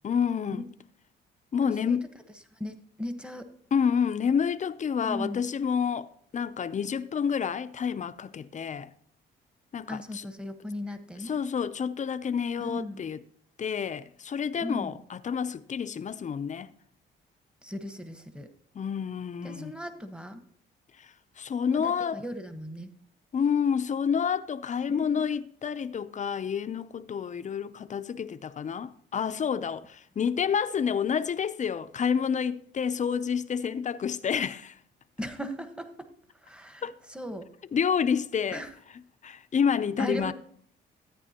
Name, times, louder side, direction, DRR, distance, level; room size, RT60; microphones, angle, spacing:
voice 1, 0.0-0.7 1.5-2.0 3.7-6.1 6.3-8.9 9.7-10.3 11.2-13.2 13.6-16.7 18.7-19.7 21.0-22.2 23.3-34.8 36.8-37.0 37.7-40.3, left 7 dB, 40° left, 0.6 m, -29 dB
voice 2, 1.6-2.0 2.6-3.5 5.0-5.4 9.9-11.4 12.6-13.0 14.6-15.0 17.6-18.5 19.4-20.4 21.7-22.9 24.9-25.2 35.2-36.1 36.5-36.8 37.1-37.5 38.5-38.7 40.0-40.3, left 1 dB, 5° right, 1.2 m, -37 dB
13.5 x 9.2 x 2.9 m
cardioid pair, 90°, 20 cm